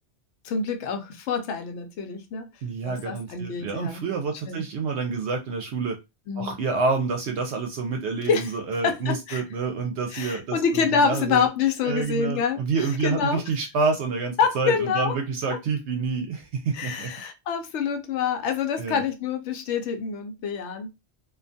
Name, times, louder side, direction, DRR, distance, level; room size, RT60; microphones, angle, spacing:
voice 1, 0.4-2.5 2.8-4.0 4.5-4.6 6.3-6.5 8.3-8.5 8.8-9.4 10.1-12.6 13.0-13.4 14.4-15.1 15.5-15.6 16.7-20.9, left 6 dB, 85° left, 0.9 m, -26 dB
voice 2, 2.6-6.0 6.4-11.5 11.8-17.1 18.8-19.0, right 4 dB, 75° right, 0.9 m, -28 dB
2.4 x 2.2 x 2.6 m
omnidirectional pair, 1.2 m